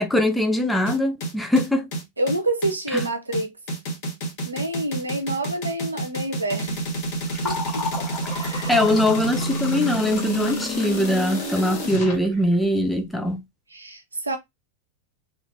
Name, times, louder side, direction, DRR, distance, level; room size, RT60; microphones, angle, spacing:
voice 1, 0.0-1.9 2.9-3.1 8.7-13.4, left 1 dB, 5° left, 0.4 m, -22 dB
sound 1, 0.9-12.1, right 1 dB, 45° left, 1.3 m, -29 dB
voice 2, 2.2-3.5 4.4-6.8 7.4-7.8 8.3-8.8 13.7-14.4, right 1 dB, 80° right, 0.6 m, -28 dB
Fill (with liquid), 6.7-13.1, left 3 dB, 20° left, 1.3 m, -36 dB
2.5 x 2.4 x 3.0 m
figure-of-eight pair, 90°, 0 cm